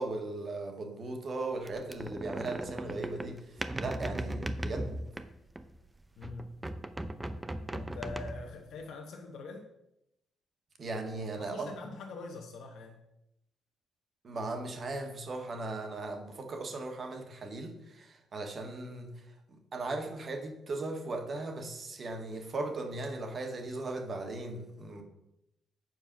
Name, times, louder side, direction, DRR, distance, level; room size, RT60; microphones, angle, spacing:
voice 1, 0.0-5.0 10.8-11.7 14.2-19.1 19.5-25.0, right 2 dB, 45° right, 4 dB, 1.6 m, -38 dB
sound 1, 1.7-5.8 6.2-8.6, right 1 dB, 15° right, 0.6 m, -38 dB
voice 2, 6.2-6.6 7.7-9.7 11.4-13.0, left 3 dB, 75° left, 3 dB, 1.0 m, -44 dB
7.6 x 4.8 x 5.9 m, 0.85 s
cardioid pair, 90°, 0 cm